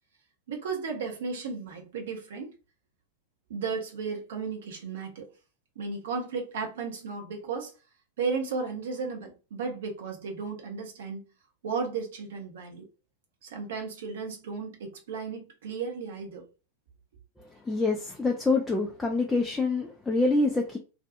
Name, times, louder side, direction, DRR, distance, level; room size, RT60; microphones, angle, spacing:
voice 1, 0.5-2.5 3.5-5.2 5.8-7.7 8.2-11.2 11.6-12.9 13.4-16.5, right 5 dB, 60° right, 0.7 m, -34 dB
voice 2, 17.7-20.8, left 3 dB, 10° left, 0.4 m, -26 dB
2.5 x 2.3 x 2.5 m
figure-of-eight pair, 90°, 0 cm